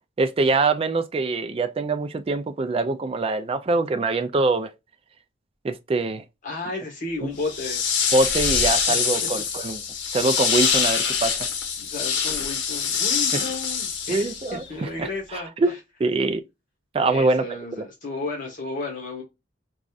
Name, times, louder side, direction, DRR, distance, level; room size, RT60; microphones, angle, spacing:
voice 1, 0.2-4.7 5.6-6.2 7.2-7.3 8.1-9.8 10.1-11.5 13.3-13.4 14.1-15.7 16.0-16.4 16.9-17.4 17.8-17.9, right 3 dB, 30° right, 0.3 m, -24 dB
voice 2, 6.4-7.8 8.9-9.0 11.8-14.3 14.7-15.8 17.0-19.2, left 3 dB, 40° left, 1.4 m, -33 dB
sound 1, 7.4-14.6, left 6 dB, 65° left, 1.0 m, -24 dB
5.1 x 2.3 x 2.4 m
head